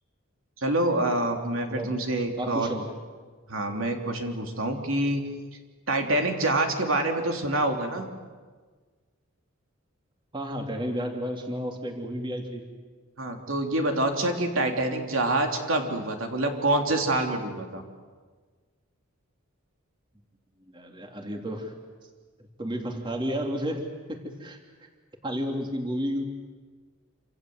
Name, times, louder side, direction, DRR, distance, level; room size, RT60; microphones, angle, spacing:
voice 1, 0.6-2.7 3.5-5.2 5.9-8.0 13.2-17.8, right 2 dB, 75° right, 3 dB, 3.2 m, -26 dB
voice 2, 2.4-2.9 10.3-12.7 20.7-21.7 22.6-24.9 25.2-26.3, equal, 25° right, 2 dB, 2.9 m, -32 dB
28.0 x 26.5 x 7.9 m, 1.4 s
head